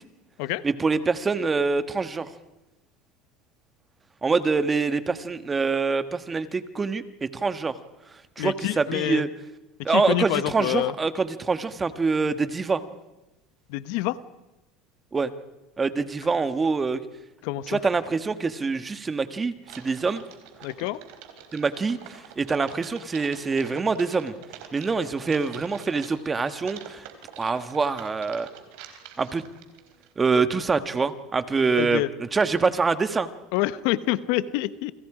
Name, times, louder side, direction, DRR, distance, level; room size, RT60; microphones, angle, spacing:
voice 1, 0.6-2.3 4.2-7.7 8.4-9.3 9.8-12.8 15.1-15.3 15.8-17.0 17.7-20.2 21.5-24.3 24.7-27.1 27.4-28.5 29.2-29.4 30.2-32.0 32.3-33.3, right 4 dB, 20° right, 11 dB, 1.5 m, -25 dB
voice 2, 8.4-9.3 9.9-10.9 13.7-14.2 17.4-17.8 20.6-21.0 31.8-32.1 33.5-34.9, left 16 dB, 70° left, 14 dB, 1.1 m, -27 dB
Typing, 19.6-30.1, right 9 dB, 70° right, 3.9 m, -46 dB
29.0 x 25.5 x 5.0 m, 1.0 s
supercardioid pair, 110°, 0 cm